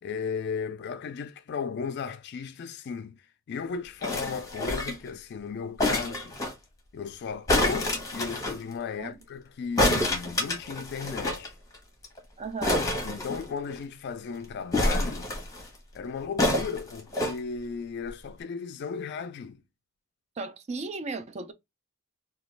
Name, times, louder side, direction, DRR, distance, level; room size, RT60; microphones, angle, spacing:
voice 1, 0.0-3.2 3.5-6.3 6.9-11.5 13.0-15.3 15.9-19.6, left 6 dB, 55° left, 0.3 m, -35 dB
sound 1, 4.0-5.1 5.8-6.5 7.5-8.6 9.8-11.5 11.7-11.8 12.0-12.2 12.6-13.8 14.7-15.7 16.4-17.3 18.1-18.2, left 1 dB, 15° left, 1.0 m, -27 dB
voice 2, 12.4-12.9 20.4-21.5, right 3 dB, 30° right, 0.4 m, -35 dB
2.9 x 2.3 x 3.1 m
head